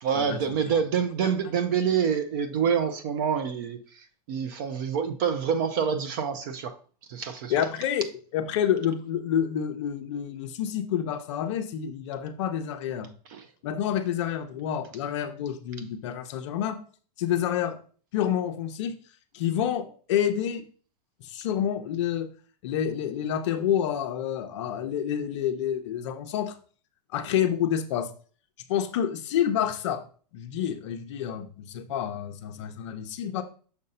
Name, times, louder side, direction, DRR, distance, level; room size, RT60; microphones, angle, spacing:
voice 1, 0.0-6.7 7.1-7.6 13.3-13.5, right 7 dB, 30° right, 0.4 m, -27 dB
voice 2, 7.5-8.1 8.3-13.1 13.6-16.8 17.2-17.8 18.1-18.9 19.3-20.6 21.3-22.3 22.6-26.5 27.1-28.1 28.7-30.0 30.3-33.4, left 9 dB, 45° left, 0.7 m, -28 dB
6.5 x 2.7 x 5.4 m
supercardioid pair, 165°, 21 cm